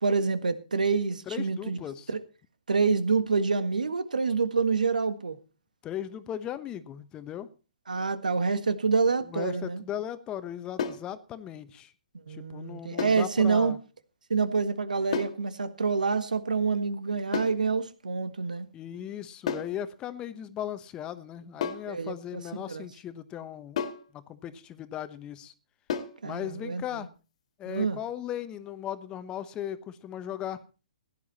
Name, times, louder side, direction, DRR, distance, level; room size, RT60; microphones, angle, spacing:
voice 1, 0.0-1.8 2.7-5.4 7.9-9.8 12.3-13.7 14.3-18.7 21.9-22.9 26.2-26.8 27.7-28.0, right 4 dB, 85° right, 1.6 m, -27 dB
voice 2, 1.3-2.1 5.8-7.5 9.3-11.9 12.3-13.8 18.7-23.8 24.1-25.5 26.2-27.1 27.6-30.6, left 10 dB, 20° left, 1.1 m, -37 dB
sound 1, 10.8-11.1 13.0-13.3 15.1-15.4 17.3-17.6 19.5-19.8 21.6-21.9 23.8-24.1 25.9-26.2, left 7 dB, 55° left, 2.1 m, -32 dB
16.5 x 11.0 x 4.2 m
hypercardioid pair, 135°, 4 cm